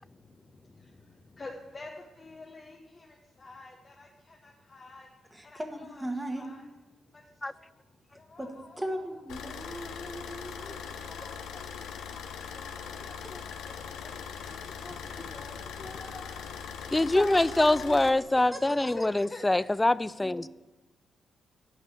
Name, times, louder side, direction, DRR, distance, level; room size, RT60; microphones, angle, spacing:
voice 1, 1.4-1.9 2.2-3.1 3.4-5.1 5.4-6.0 6.3-6.6 7.6-7.7 8.1-9.2 10.6-11.6 12.5-14.1 14.8-16.5 18.9-19.6, left 2 dB, 40° left, 1.1 m, -47 dB
voice 2, 5.3-6.5 8.4-8.5 8.8-10.7 14.4-14.7 17.2-18.1 18.5-18.9 20.2-20.4, right 1 dB, 15° right, 1.7 m, -38 dB
Car / Idling, 9.3-18.1, left 7 dB, 75° left, 0.7 m, -41 dB
voice 3, 16.9-20.5, left 2 dB, 20° left, 0.3 m, -24 dB
9.2 x 5.4 x 6.9 m
hypercardioid pair, 45°, 0 cm